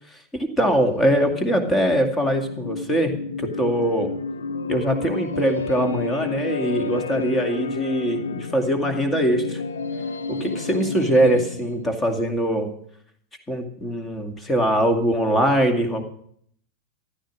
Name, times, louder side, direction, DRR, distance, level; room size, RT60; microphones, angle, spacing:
voice 1, 0.3-3.1 3.4-4.1 4.7-9.6 10.3-12.7 13.5-16.0, right 1 dB, 15° left, 5 dB, 2.3 m, -22 dB
sound 1, 0.6-12.0, left 4 dB, 70° left, 0.9 m, -31 dB
14.0 x 12.0 x 6.3 m, 0.65 s
figure-of-eight pair, 90°, 0 cm